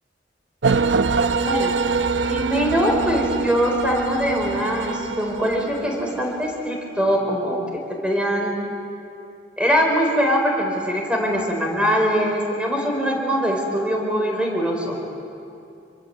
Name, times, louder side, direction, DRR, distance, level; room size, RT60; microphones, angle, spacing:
sound 1, 0.6-6.6, right 4 dB, 85° right, 0.7 m, -24 dB
voice 1, 1.4-1.8 2.2-7.6 8.0-8.6 9.6-15.0, equal, 5° right, 1 dB, 4.3 m, -22 dB
27.0 x 22.5 x 7.7 m, 2.6 s
head